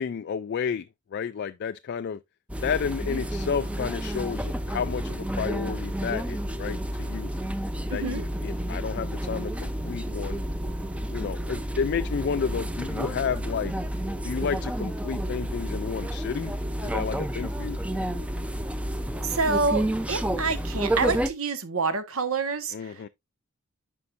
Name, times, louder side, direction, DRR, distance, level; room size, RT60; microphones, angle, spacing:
voice 1, 0.0-2.2 2.6-7.3 7.9-10.4 11.1-13.7 14.2-16.5 16.8-17.8 22.7-23.1, left 6 dB, 50° left, 0.3 m, -31 dB
sound 1, 2.5-21.3, right 1 dB, 5° right, 0.6 m, -30 dB
voice 2, 7.9-8.2 19.2-23.1, right 4 dB, 75° right, 1.3 m, -27 dB
9.5 x 5.5 x 2.5 m
head